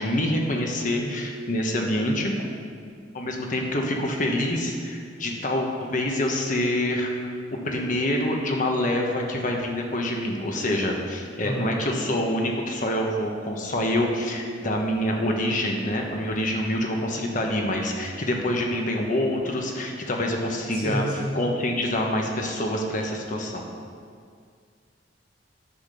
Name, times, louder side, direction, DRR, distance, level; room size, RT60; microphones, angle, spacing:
voice 1, 0.0-2.5 3.1-7.3 7.6-21.0 21.3-23.6, left 1 dB, 45° left, 1 dB, 1.3 m, -26 dB
voice 2, 11.4-11.7 20.7-21.3, equal, 30° right, -7 dB, 1.5 m, -30 dB
9.8 x 5.9 x 6.9 m, 2.2 s
head